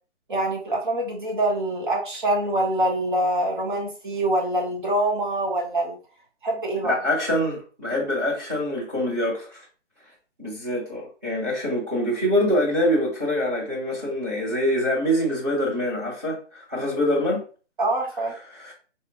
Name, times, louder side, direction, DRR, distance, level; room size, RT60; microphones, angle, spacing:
voice 1, 0.3-6.0 6.4-7.0 17.8-18.3, right 1 dB, 45° right, 0.9 m, -25 dB
voice 2, 6.8-9.6 10.4-17.4 18.3-18.7, equal, 15° right, 0.8 m, -25 dB
4.2 x 2.1 x 2.4 m
hypercardioid pair, 165°, 36 cm